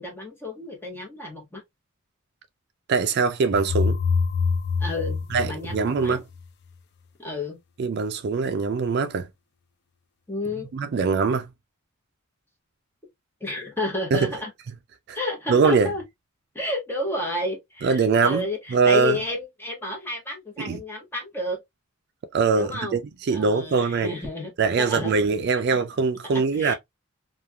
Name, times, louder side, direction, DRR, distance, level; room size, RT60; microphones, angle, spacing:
voice 1, 0.0-1.6 4.8-6.2 7.2-7.6 10.3-10.7 13.4-14.5 15.1-16.0 16.5-21.6 22.5-23.0 23.3-24.5 24.8-25.1 26.6-26.7, left 2 dB, 10° left, 1.0 m, -31 dB
voice 2, 2.9-4.0 5.3-6.2 7.8-9.3 10.7-11.5 14.1-14.3 15.1-15.2 15.5-15.9 17.8-19.2 20.6-20.8 22.3-24.1 24.6-26.7, right 5 dB, 55° right, 0.3 m, -22 dB
sound 1, 3.5-6.4, left 5 dB, 50° left, 0.3 m, -25 dB
3.0 x 2.3 x 2.2 m
head